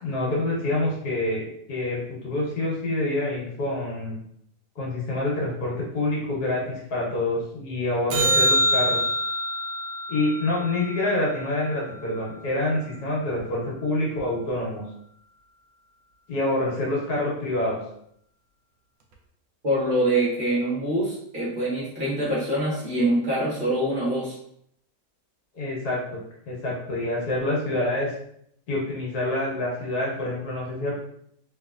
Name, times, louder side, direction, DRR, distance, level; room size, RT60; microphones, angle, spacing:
voice 1, 0.0-4.2 4.7-9.0 10.1-14.8 16.3-17.8 25.5-26.2 26.4-28.1 28.7-30.9, left 2 dB, 65° left, -4 dB, 1.6 m, -27 dB
sound 1, 8.1-12.6 19.1-19.2, right 1 dB, 70° right, 0.9 m, -26 dB
voice 2, 19.6-24.3, right 1 dB, 30° right, -7 dB, 1.2 m, -24 dB
3.2 x 3.1 x 2.4 m, 0.70 s
omnidirectional pair, 1.8 m